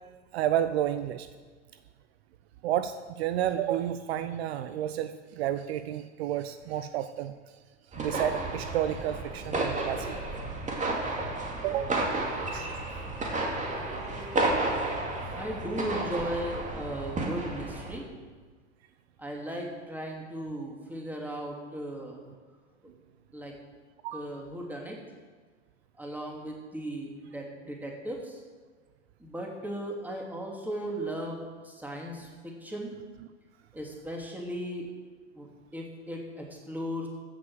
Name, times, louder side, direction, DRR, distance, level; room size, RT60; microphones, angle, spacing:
voice 1, 0.3-1.3 2.6-7.6 7.9-10.2 11.6-12.0 12.5-12.7 13.6-13.7 14.0-14.1 24.0-24.3, right 11 dB, 60° right, 11 dB, 0.7 m, -31 dB
sound 1, 7.9-18.0, right 2 dB, 20° right, 2.4 m, -32 dB
voice 2, 15.4-18.0 19.2-22.2 23.3-23.5 24.1-25.0 26.0-28.4 29.2-32.9 33.7-34.9 35.3-35.5 35.7-37.1, equal, 5° right, -1 dB, 2.9 m, -37 dB
15.5 x 6.3 x 6.4 m, 1.5 s
hypercardioid pair, 100°, 36 cm